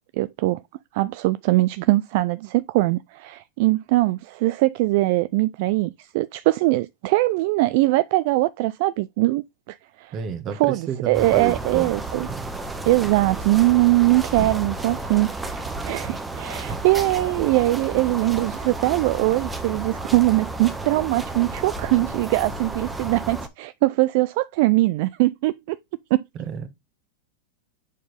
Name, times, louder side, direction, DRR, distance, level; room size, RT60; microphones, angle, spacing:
voice 1, 0.1-0.6 0.9-10.1 10.6-12.3 12.8-25.8 26.1-26.2, right 19 dB, 60° right, 0.3 m, -21 dB
voice 2, 10.1-11.9 12.3-12.5 16.4-16.8 26.3-26.7, right 7 dB, 35° right, 1.4 m, -31 dB
sound 1, 11.1-23.5, right 2 dB, 10° right, 1.1 m, -32 dB
7.2 x 4.4 x 3.4 m
hypercardioid pair, 125°, 0 cm